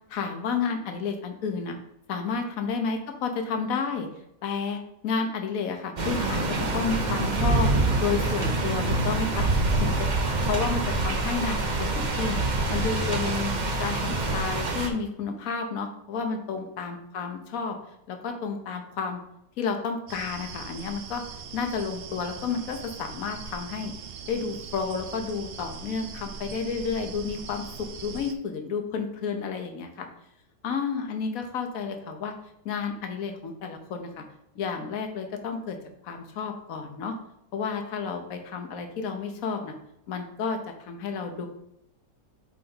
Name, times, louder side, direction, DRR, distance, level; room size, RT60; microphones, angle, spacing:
voice 1, 0.1-1.8 2.1-4.1 4.4-7.7 8.0-9.5 9.8-10.1 10.4-12.4 12.7-13.5 13.8-17.8 18.1-19.2 19.6-21.2 21.5-23.9 24.3-30.1 30.6-32.3 32.6-34.2 34.5-35.8 36.0-37.2 37.5-39.7 40.1-41.5, left 5 dB, 60° left, 5 dB, 1.3 m, -31 dB
sound 1, 6.0-14.9, right 2 dB, 40° right, 0.7 m, -26 dB
sound 2, 20.1-28.3, right 6 dB, 80° right, 0.5 m, -41 dB
7.9 x 4.1 x 3.9 m, 0.77 s
omnidirectional pair, 1.8 m